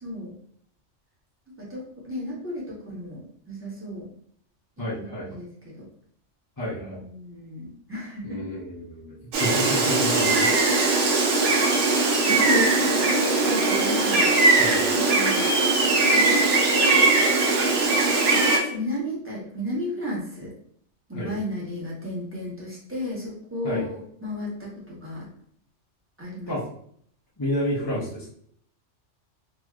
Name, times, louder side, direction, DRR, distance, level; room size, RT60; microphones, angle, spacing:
voice 1, 0.0-0.3 1.6-4.1 5.0-5.5 5.7-5.8 6.8-8.4 11.4-11.9 13.1-14.3 15.0-15.5 16.1-17.0 18.3-20.5 21.1-25.3 26.2-26.6, equal, 10° right, -7 dB, 1.0 m, -33 dB
voice 2, 4.8-5.3 6.6-7.0 8.2-10.5 12.3-13.0 14.6-14.8 21.1-21.3 23.6-23.9 26.5-26.6 27.4-28.3, left 1 dB, 20° left, -8 dB, 0.6 m, -29 dB
Gull seagull, 9.3-18.6, right 3 dB, 85° right, 1.0 m, -20 dB
3.1 x 2.8 x 2.4 m, 0.64 s
omnidirectional pair, 1.2 m